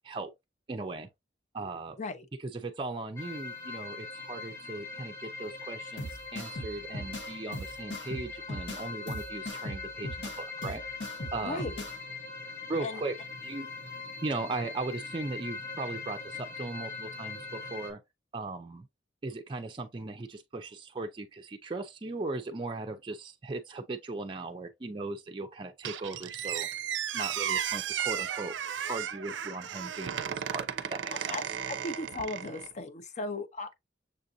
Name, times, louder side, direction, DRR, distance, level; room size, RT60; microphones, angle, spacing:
voice 1, 0.7-1.1 1.5-2.0 2.4-10.8 11.3-11.6 12.7-13.1 13.4-13.7 14.2-18.0 18.3-18.9 19.2-26.7 27.1-28.5 28.9-31.4, right 3 dB, 25° right, 0.4 m, -38 dB
sound 1, 3.2-17.9, left 4 dB, 15° left, 0.9 m, -41 dB
sound 2, 6.0-12.0, left 1 dB, 75° left, 1.1 m, -39 dB
voice 2, 11.4-11.9 12.8-13.0 31.1-33.7, left 2 dB, 40° left, 0.6 m, -37 dB
Squeak, 25.8-32.7, right 9 dB, 85° right, 0.4 m, -34 dB
6.7 x 2.5 x 2.6 m
head